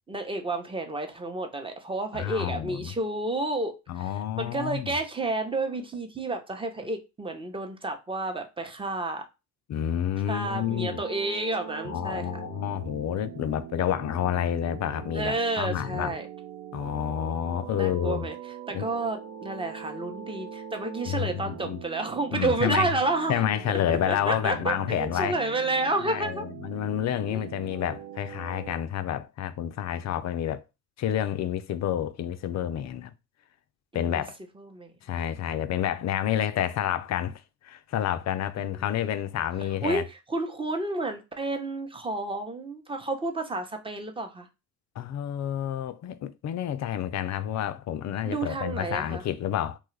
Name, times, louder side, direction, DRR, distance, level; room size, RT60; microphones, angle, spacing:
voice 1, 0.1-4.1 4.4-9.2 10.3-12.3 15.1-16.3 17.8-18.3 18.7-23.4 24.1-26.5 27.3-27.4 33.9-34.2 34.6-34.9 38.6-38.8 39.8-40.0 40.3-44.5 48.2-49.2, right 2 dB, 15° right, 0.8 m, -30 dB
voice 2, 2.1-2.9 3.9-4.9 9.7-11.0 11.8-16.1 16.7-18.3 18.7-18.8 21.1-21.8 22.3-22.9 23.3-25.3 26.0-30.6 31.0-33.1 33.9-34.3 35.0-40.0 45.0-49.8, left 10 dB, 45° left, 0.4 m, -29 dB
sound 1, 10.4-28.7, right 9 dB, 45° right, 0.5 m, -42 dB
3.0 x 2.3 x 3.2 m
hypercardioid pair, 60°, 40 cm